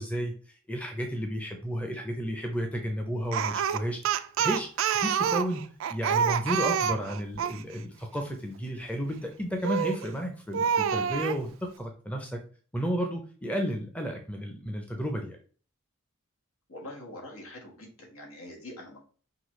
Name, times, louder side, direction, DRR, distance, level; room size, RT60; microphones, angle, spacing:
voice 1, 0.0-4.0 4.4-4.7 4.9-5.6 5.9-12.4 12.7-15.4, equal, 5° left, 3 dB, 0.5 m, -32 dB
Speech, 3.3-7.6 9.6-10.1 10.5-11.4, right 8 dB, 70° right, 0.3 m, -27 dB
voice 2, 16.7-19.0, left 1 dB, 85° left, 0 dB, 1.5 m, -44 dB
5.7 x 2.8 x 3.1 m, 0.40 s
head